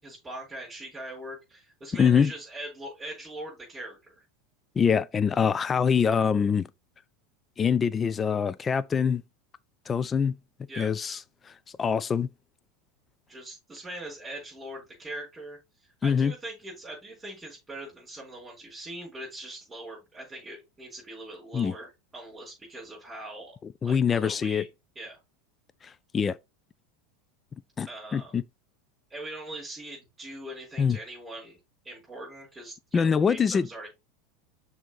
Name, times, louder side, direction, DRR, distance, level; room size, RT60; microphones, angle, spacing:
voice 1, 0.0-4.2 10.7-10.9 13.3-23.6 23.8-24.7 25.0-25.2 27.9-28.3 29.1-31.6 31.8-33.9, right 1 dB, 10° right, 4.0 m, -41 dB
voice 2, 2.0-2.3 4.8-6.7 7.6-9.2 9.9-10.4 10.8-11.5 11.8-12.3 16.0-16.3 21.5-21.7 23.8-24.6 25.8-26.4 27.8-28.4 30.8-31.0 32.9-33.9, left 6 dB, 20° left, 0.3 m, -24 dB
6.2 x 4.1 x 4.0 m
figure-of-eight pair, 80°, 0 cm